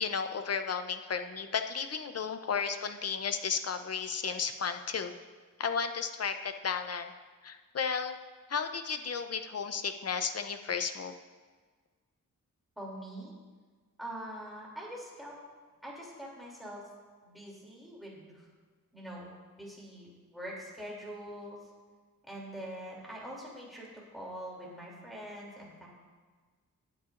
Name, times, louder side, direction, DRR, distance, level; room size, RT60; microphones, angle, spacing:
voice 1, 0.0-5.1 5.6-7.1 7.4-8.2 8.5-11.1, left 6 dB, 45° left, 8 dB, 0.6 m, -33 dB
voice 2, 12.8-13.3 14.0-15.4 15.8-16.8 17.2-18.5 18.9-19.3 19.6-21.7 22.2-25.9, right 1 dB, ahead, -5 dB, 2.9 m, -44 dB
17.5 x 8.6 x 2.5 m, 1.4 s
wide cardioid pair, 130°, 34 cm